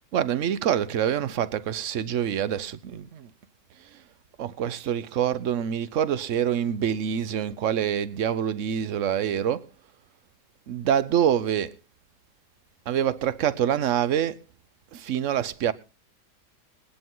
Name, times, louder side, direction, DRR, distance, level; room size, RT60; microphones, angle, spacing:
voice 1, 0.1-3.3 3.8-4.0 4.4-9.7 10.7-11.7 12.9-14.4 14.9-15.7, right 9 dB, 55° right, 1.0 m, -26 dB
21.0 x 10.5 x 3.8 m
omnidirectional pair, 1.8 m